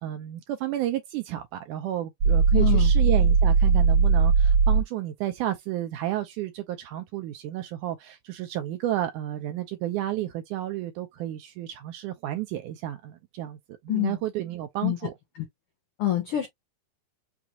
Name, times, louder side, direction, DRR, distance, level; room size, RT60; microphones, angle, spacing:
voice 1, 0.0-13.6 13.8-15.1, right 13 dB, 80° right, 1.9 m, -31 dB
sound 1, 2.2-4.8, right 5 dB, 60° right, 1.8 m, -19 dB
voice 2, 2.5-2.9 13.9-14.2 14.8-15.0 16.0-16.5, left 14 dB, 85° left, 1.2 m, -25 dB
5.9 x 2.4 x 2.7 m
omnidirectional pair, 4.0 m